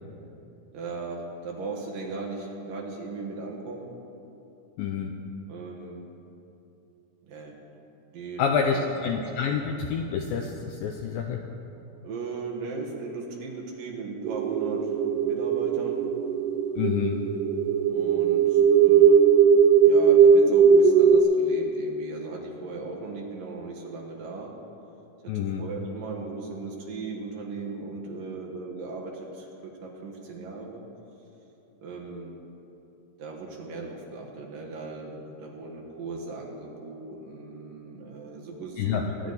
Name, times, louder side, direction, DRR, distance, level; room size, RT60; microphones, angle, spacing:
voice 1, 0.7-3.9 5.5-6.0 7.2-7.5 8.1-8.8 12.0-14.9 15.2-16.0 17.9-19.2 19.8-24.5 25.3-30.8 31.8-32.3 33.2-39.3, right 3 dB, 65° right, -1 dB, 2.7 m, -37 dB
voice 2, 4.8-5.1 8.4-11.4 16.8-17.2 25.3-25.6 38.8-39.0, left 7 dB, 80° left, 3 dB, 2.1 m, -28 dB
sound 1, 14.3-21.2, right 6 dB, 85° right, 2.8 m, -19 dB
23.0 x 10.5 x 4.1 m, 3.0 s
omnidirectional pair, 4.8 m